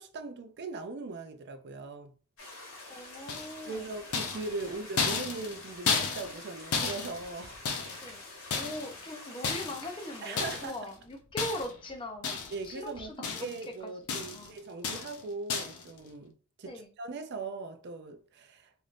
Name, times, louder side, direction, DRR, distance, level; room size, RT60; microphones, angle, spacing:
voice 1, 0.0-2.1 3.7-7.6 10.2-10.8 12.5-13.1 13.4-18.7, right 3 dB, 50° right, 0.4 m, -40 dB
sound 1, 2.4-10.7, left 2 dB, 65° left, 1.3 m, -47 dB
voice 2, 2.9-3.9 8.0-8.2 8.5-12.4 12.6-14.6 16.6-16.9, left 1 dB, 25° left, 0.6 m, -41 dB
sound 2, 3.3-3.7 4.1-8.1 8.5-9.0 9.4-9.9 10.4-10.8 11.4-11.9 12.2-12.7 13.0-13.7 14.1-14.5 14.8-15.2 15.5-15.9, left 5 dB, 90° left, 0.5 m, -33 dB
3.3 x 2.5 x 2.5 m
head